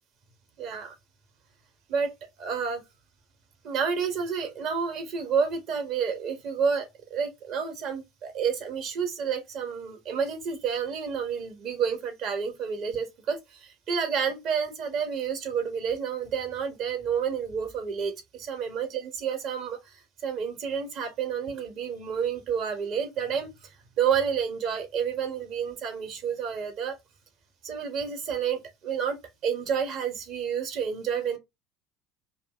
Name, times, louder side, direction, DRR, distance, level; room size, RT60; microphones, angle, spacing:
voice 1, 0.6-0.9 1.9-2.1 2.4-2.8 3.6-23.7 24.0-27.0 27.6-29.2 29.4-31.4, right 6 dB, 55° right, 1.8 m, -30 dB
5.1 x 2.5 x 3.2 m
hypercardioid pair, 75°, 0 cm